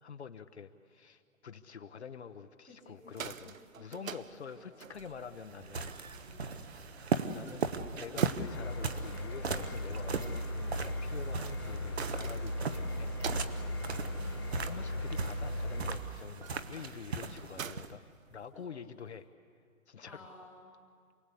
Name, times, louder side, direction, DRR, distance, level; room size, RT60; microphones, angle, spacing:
voice 1, 0.0-5.9 6.3-6.7 7.3-7.7 8.0-13.1 14.7-19.3 19.9-20.3, left 6 dB, 55° left, 8 dB, 0.9 m, -47 dB
voice 2, 2.7-4.9 6.1-6.5 7.9-8.3 13.6-14.6 18.5-18.6 20.0-20.7, left 1 dB, ahead, -6 dB, 1.3 m, -56 dB
sound 1, 2.9-18.8, right 7 dB, 75° right, 0.9 m, -50 dB
sound 2, 5.0-17.9, right 5 dB, 50° right, 1.1 m, -38 dB
sound 3, 8.4-16.0, left 1 dB, 20° left, 0.9 m, -37 dB
27.5 x 18.5 x 8.3 m, 2.2 s
hypercardioid pair, 180°, 40 cm